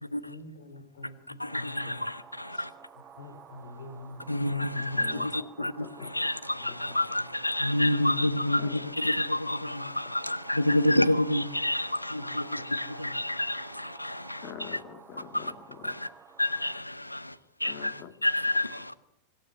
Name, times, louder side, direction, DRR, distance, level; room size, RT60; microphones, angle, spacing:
voice 1, 0.0-1.9 2.5-2.7 3.2-4.5 4.9-5.1 6.5-7.3, left 2 dB, 60° left, 3.6 m, -47 dB
voice 2, 1.4-2.7 4.3-5.7 6.0-14.8 15.3-15.5 15.8-16.1 16.4-18.9, left 1 dB, 85° left, 0.9 m, -29 dB
sound 1, 1.5-16.8, right 7 dB, 20° right, 1.4 m, -52 dB
voice 3, 4.7-6.1 8.6-8.8 14.4-16.0 17.7-18.1, left 8 dB, 40° left, 2.3 m, -45 dB
25.5 x 12.5 x 9.8 m
figure-of-eight pair, 90°, 0 cm